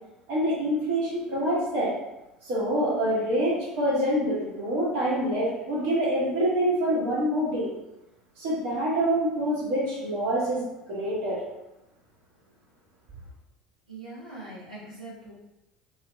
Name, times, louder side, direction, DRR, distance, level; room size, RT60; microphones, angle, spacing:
voice 1, 0.3-1.9 2.4-7.7 8.4-11.4, equal, 55° right, -6 dB, 1.5 m, -26 dB
voice 2, 13.9-15.3, right 2 dB, 80° right, -10 dB, 1.2 m, -42 dB
3.9 x 2.8 x 3.1 m, 0.92 s
figure-of-eight pair, 70°, 4 cm